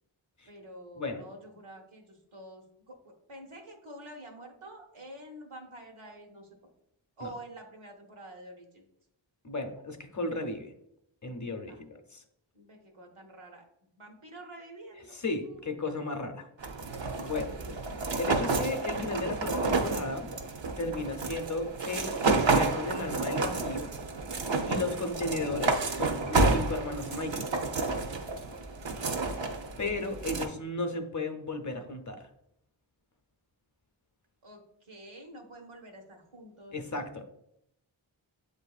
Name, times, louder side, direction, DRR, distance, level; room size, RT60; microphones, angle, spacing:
voice 1, 0.5-6.5 7.2-8.8 11.7-11.8 12.5-13.6 14.0-15.7 17.6-17.7 28.8-29.3 34.4-36.7, right 1 dB, 90° right, 1 dB, 1.0 m, -48 dB
voice 2, 9.4-10.7 11.2-12.2 15.1-16.5 17.2-17.5 18.2-20.3 20.8-23.9 24.7-27.5 27.9-28.0 29.8-32.3 36.7-37.3, left 2 dB, 40° left, 6 dB, 0.6 m, -34 dB
sound 1, 16.6-30.5, right 3 dB, 65° right, 0.7 m, -30 dB
7.6 x 2.6 x 2.3 m, 0.77 s
wide cardioid pair, 45°, 47 cm